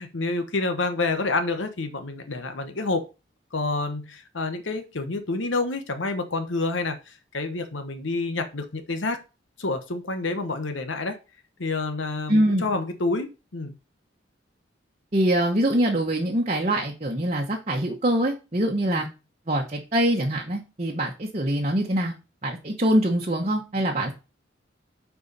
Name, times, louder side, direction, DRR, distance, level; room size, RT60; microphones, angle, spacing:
voice 1, 0.0-3.0 3.5-9.2 9.6-11.2 11.6-13.7 18.9-19.0, left 3 dB, 80° left, 1.1 m, -28 dB
voice 2, 12.3-12.7 15.1-19.1 19.5-22.1 22.4-24.1, right 1 dB, 35° right, 1.1 m, -24 dB
6.8 x 4.8 x 5.4 m
head